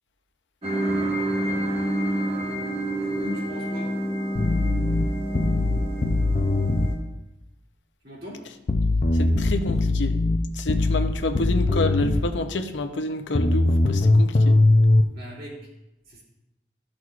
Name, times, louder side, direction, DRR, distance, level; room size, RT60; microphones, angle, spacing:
sound 1, 0.6-6.9, right 1 dB, 35° right, 1.3 m, -28 dB
voice 1, 2.9-3.9 8.0-8.4 14.9-15.6 16.1-16.2, left 1 dB, 55° right, -5 dB, 2.3 m, -40 dB
sound 2, 4.4-6.9 8.7-12.3 13.4-15.0, left 2 dB, 40° left, 0.5 m, -20 dB
voice 2, 9.2-10.2 10.6-14.6, left 2 dB, 85° left, 7 dB, 0.6 m, -28 dB
13.0 x 6.2 x 2.4 m, 0.92 s
head